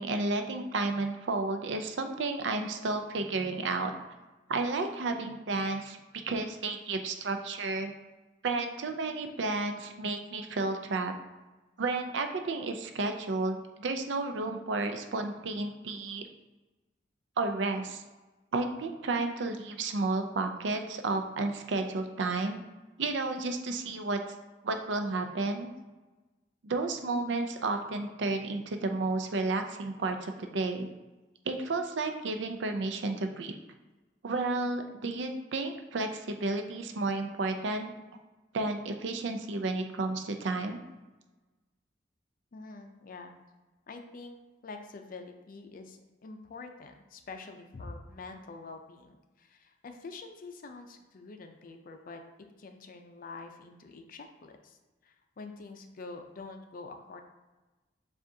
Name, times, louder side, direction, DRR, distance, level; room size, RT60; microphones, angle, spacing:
voice 1, 0.0-3.9 4.5-6.0 6.3-7.9 8.4-11.1 11.8-16.3 17.4-18.0 18.5-22.6 23.0-24.2 24.6-25.7 26.6-30.9 31.5-33.5 34.2-37.9 38.5-40.8, right 3 dB, 90° right, 6 dB, 0.5 m, -32 dB
voice 2, 42.5-43.3 43.9-44.4 44.6-52.2 52.6-57.2, left 3 dB, 50° left, 5 dB, 0.5 m, -46 dB
7.4 x 2.5 x 2.7 m, 1.2 s
head